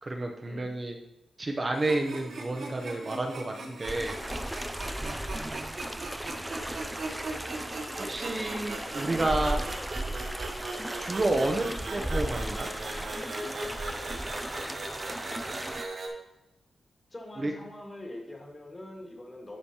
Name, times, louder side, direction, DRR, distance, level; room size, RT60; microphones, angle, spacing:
voice 1, 0.0-1.0 1.4-4.7 5.0-5.8 8.0-9.6 11.0-12.7 17.4-17.5, right 2 dB, 30° right, 3 dB, 0.7 m, -31 dB
sound 1, 1.7-16.1, right 3 dB, 65° right, 1.2 m, -40 dB
sound 2, 3.9-15.8, right 1 dB, 5° right, 0.3 m, -36 dB
voice 2, 17.1-19.6, left 1 dB, 25° left, 1 dB, 1.6 m, -43 dB
11.5 x 5.1 x 2.9 m, 0.90 s
cardioid pair, 95°, 0 cm